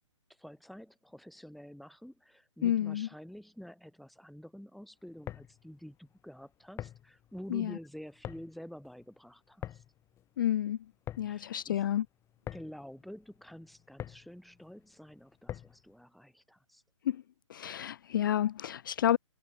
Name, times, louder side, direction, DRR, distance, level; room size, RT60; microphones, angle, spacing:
voice 1, 0.4-9.8 11.3-11.8 12.5-16.8, equal, ahead, 2.4 m, -49 dB
voice 2, 2.6-3.1 7.5-7.8 10.4-10.8 11.2-12.1 17.0-17.2 17.5-19.2, left 11 dB, 40° left, 0.4 m, -30 dB
sound 1, 5.0-15.9, left 11 dB, 15° left, 4.3 m, -47 dB
figure-of-eight pair, 130°, 17 cm